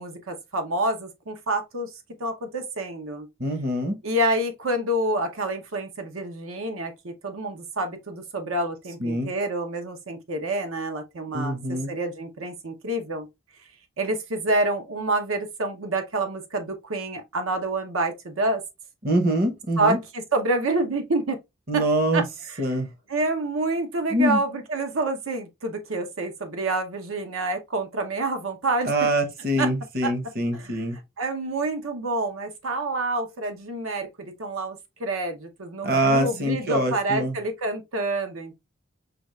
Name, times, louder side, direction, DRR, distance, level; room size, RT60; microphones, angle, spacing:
voice 1, 0.0-1.9 2.2-3.3 4.0-11.6 11.9-13.3 14.0-18.6 19.8-21.4 21.7-21.8 22.1-22.2 23.1-28.9 29.6-29.7 30.0-30.1 30.5-30.7 31.2-38.5, right 2 dB, 85° right, 0.8 m, -27 dB
voice 2, 3.4-4.0 9.0-9.3 11.3-11.9 19.0-20.0 21.7-22.3 22.6-22.9 24.1-24.4 28.8-31.0 35.8-37.4, right 1 dB, 45° right, 0.8 m, -24 dB
5.0 x 2.4 x 3.1 m
head